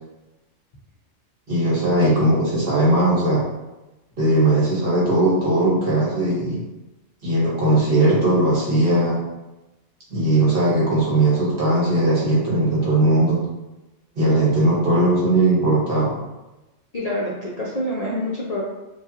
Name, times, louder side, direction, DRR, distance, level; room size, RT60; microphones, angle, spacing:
voice 1, 1.5-3.5 4.2-6.6 7.2-9.2 10.1-13.4 14.2-16.2, right 1 dB, 50° right, -6 dB, 1.4 m, -19 dB
voice 2, 16.9-18.6, left 1 dB, 45° left, -5 dB, 0.5 m, -26 dB
4.8 x 2.4 x 2.8 m, 1.0 s
omnidirectional pair, 1.3 m